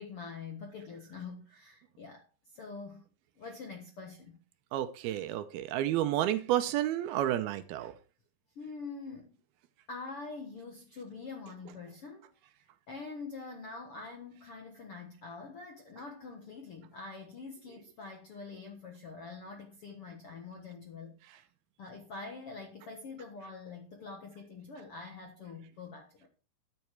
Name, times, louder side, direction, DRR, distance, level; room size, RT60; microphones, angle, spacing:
voice 1, 0.0-3.0 3.4-4.4 8.5-9.4 9.9-12.3 12.6-21.2 21.8-26.3, left 4 dB, 60° left, 1.5 m, -45 dB
voice 2, 4.7-7.9, right 12 dB, 80° right, 2.5 m, -30 dB
12.5 x 8.4 x 4.6 m
omnidirectional pair, 4.7 m